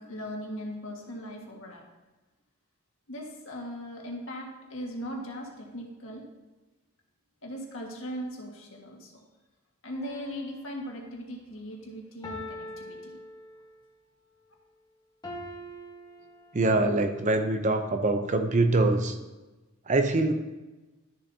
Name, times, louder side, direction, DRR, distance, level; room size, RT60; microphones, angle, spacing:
voice 1, 0.0-1.8 3.1-6.2 7.4-9.2 9.8-13.1, equal, 70° left, -1 dB, 1.7 m, -39 dB
sound 1, 9.9-11.2 12.2-13.9 15.2-17.0 17.6-17.7, left 1 dB, 20° left, 1.2 m, -43 dB
voice 2, 16.5-19.2 19.9-20.3, right 2 dB, 35° right, 7 dB, 0.6 m, -24 dB
12.0 x 6.9 x 2.8 m, 1.1 s
head